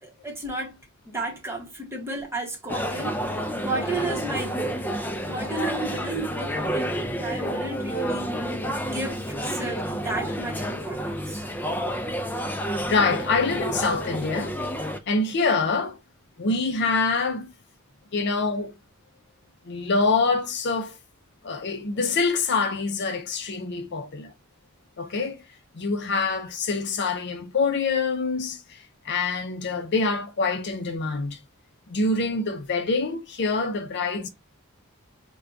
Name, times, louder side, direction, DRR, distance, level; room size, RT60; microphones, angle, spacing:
voice 1, 0.0-8.3 8.8-11.4, right 2 dB, 10° right, 1.0 m, -33 dB
sound 1, 2.7-15.0, equal, 10° left, 0.3 m, -30 dB
voice 2, 12.9-14.7 15.1-16.0 16.4-17.5 18.1-18.7 19.7-21.0 21.4-24.3 25.0-25.4 25.7-31.4 31.9-34.3, left 4 dB, 55° left, 0.5 m, -25 dB
4.5 x 2.2 x 2.5 m
head